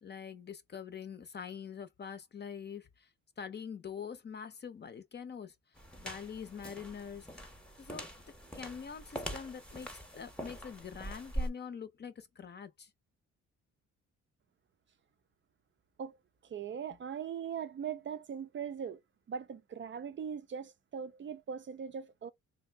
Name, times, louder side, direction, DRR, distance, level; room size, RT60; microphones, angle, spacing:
voice 1, 0.0-3.1 3.4-5.5 6.0-7.3 7.8-8.1 8.5-12.9, left 7 dB, 35° left, 0.6 m, -44 dB
sound 1, 5.8-11.5, right 1 dB, 5° left, 0.8 m, -43 dB
voice 2, 16.4-19.0 19.3-22.3, right 7 dB, 40° right, 0.4 m, -40 dB
3.4 x 2.5 x 3.3 m
cardioid pair, 90°, 30 cm